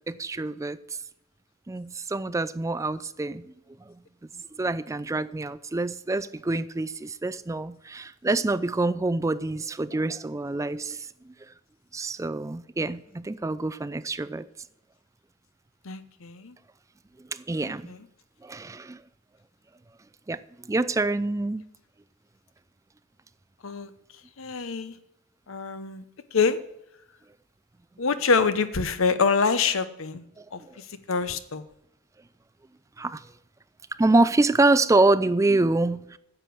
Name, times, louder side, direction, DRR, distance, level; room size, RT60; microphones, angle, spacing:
voice 1, 0.1-0.8 1.7-3.5 3.9-4.0 4.5-11.1 11.9-14.5 17.3-17.9 18.4-19.0 20.3-20.4 20.7-21.6 30.4-30.5 33.0-33.2 34.0-36.2, right 2 dB, 15° right, 0.3 m, -26 dB
voice 2, 15.9-16.5 17.9-18.0 23.6-23.9 24.4-24.9 25.5-26.0 26.3-26.6 28.0-30.2 30.5-30.6 31.1-31.6, left 5 dB, 70° left, 0.8 m, -25 dB
9.9 x 6.9 x 7.7 m
head